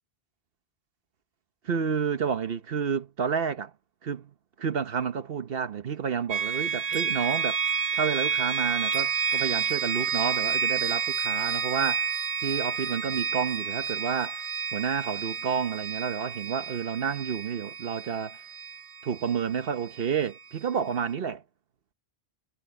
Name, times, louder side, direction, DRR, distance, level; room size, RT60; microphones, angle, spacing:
voice 1, 1.6-3.7 4.0-4.3 4.6-7.6 7.9-12.1 12.4-14.4 14.7-18.4 19.0-21.4, right 7 dB, 65° right, 1.1 m, -30 dB
sound 1, 6.3-20.1, right 6 dB, 80° right, 1.5 m, -30 dB
omnidirectional pair, 1.1 m